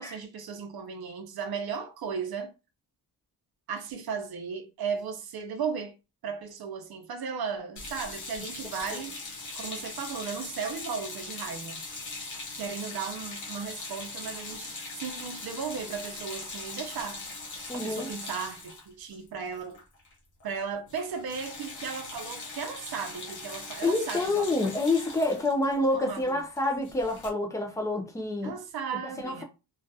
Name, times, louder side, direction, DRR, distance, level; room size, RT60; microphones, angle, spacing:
voice 1, 0.0-2.5 3.7-5.9 6.2-9.1 9.6-11.8 12.6-17.2 17.7-19.8 20.4-24.7 25.7-26.4 28.4-29.4, right 6 dB, 60° right, 0.5 m, -36 dB
sound 1, 7.8-20.1 20.4-20.6 20.9-27.3, left 3 dB, 45° left, 0.7 m, -41 dB
voice 2, 17.7-18.1 23.8-28.5 29.0-29.4, left 2 dB, 10° left, 0.3 m, -28 dB
2.3 x 2.1 x 2.6 m
wide cardioid pair, 175°, 41 cm